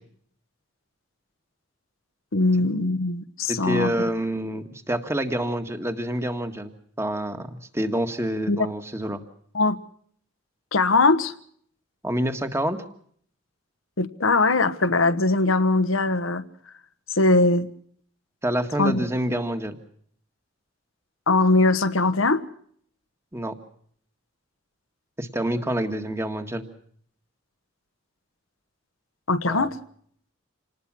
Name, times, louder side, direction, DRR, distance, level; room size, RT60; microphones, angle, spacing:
voice 1, 2.3-3.9 8.5-8.7 9.5-9.8 10.7-11.3 14.0-16.4 17.1-17.7 18.8-19.0 21.3-22.4 29.3-29.8, left 3 dB, 90° left, 13 dB, 1.3 m, -21 dB
voice 2, 3.5-9.2 12.0-12.8 18.4-19.8 23.3-23.5 25.2-26.7 29.5-29.7, right 1 dB, 15° right, 8 dB, 1.7 m, -27 dB
27.5 x 19.5 x 6.2 m, 0.62 s
head